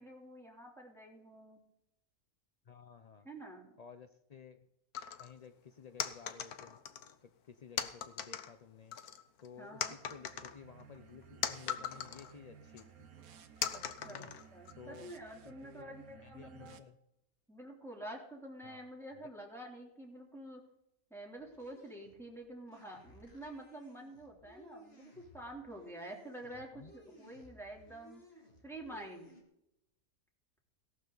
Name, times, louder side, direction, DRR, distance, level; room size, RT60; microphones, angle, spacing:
voice 1, 0.0-1.6 3.2-3.8 9.6-10.0 13.7-16.8 17.5-20.6 21.1-28.2 28.6-29.3, right 1 dB, ahead, -2 dB, 3.1 m, -48 dB
voice 2, 2.7-3.3 3.8-4.6 5.2-6.8 7.2-9.0 9.4-9.8 10.1-13.1 14.1-14.3 14.7-15.1 15.4-15.9 16.2-17.0 18.6-18.9 26.5-26.9, left 6 dB, 60° left, 9 dB, 0.4 m, -54 dB
sound 1, 4.9-5.3 6.0-7.1 7.8-8.5 8.9-9.5 9.8-12.3 12.8-12.9 13.6-14.7, left 9 dB, 85° left, 1.4 m, -39 dB
sound 2, 10.0-16.8, right 7 dB, 75° right, 1.4 m, -57 dB
sound 3, 21.4-29.4, equal, 40° left, 2.6 m, -60 dB
17.0 x 12.0 x 3.9 m, 0.83 s
omnidirectional pair, 1.6 m